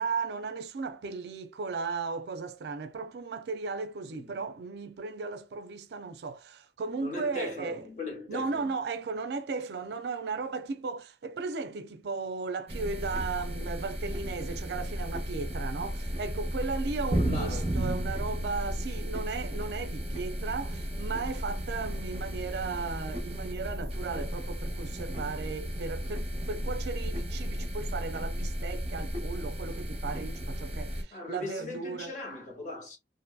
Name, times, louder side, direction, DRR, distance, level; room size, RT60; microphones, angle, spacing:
voice 1, 0.0-7.9 8.3-32.1, right 4 dB, 70° right, 0.4 m, -36 dB
voice 2, 7.0-8.6 17.1-18.1 31.1-33.0, left 2 dB, 45° left, 1.3 m, -39 dB
sound 1, 12.7-31.0, equal, 35° right, 0.7 m, -34 dB
2.6 x 2.5 x 2.2 m
head